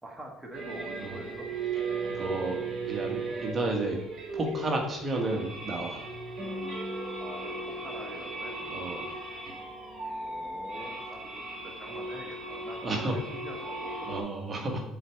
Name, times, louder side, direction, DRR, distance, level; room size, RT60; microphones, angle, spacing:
voice 1, 0.0-1.5 7.2-8.5 10.2-14.1, right 1 dB, 5° right, -1 dB, 1.4 m, -44 dB
sound 1, 0.5-14.2, right 3 dB, 50° right, 3.7 m, -37 dB
voice 2, 2.1-4.0 4.3-6.1 8.7-9.1 12.8-13.2 14.1-14.9, right 2 dB, 30° right, 2 dB, 1.4 m, -32 dB
7.8 x 4.6 x 6.3 m, 0.79 s
cardioid pair, 130°, 0 cm